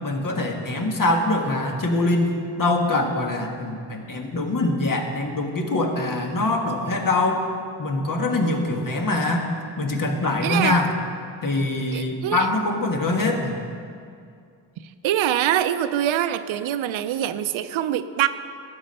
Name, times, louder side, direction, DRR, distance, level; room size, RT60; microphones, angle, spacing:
voice 1, 0.0-7.4 7.8-9.5 9.8-10.9 11.4-13.5, left 2 dB, 45° left, 3 dB, 1.6 m, -23 dB
voice 2, 10.4-10.8 11.9-12.5 15.0-18.3, right 11 dB, 80° right, 11 dB, 0.6 m, -24 dB
12.0 x 8.1 x 5.4 m, 2.3 s
cardioid pair, 80°, 46 cm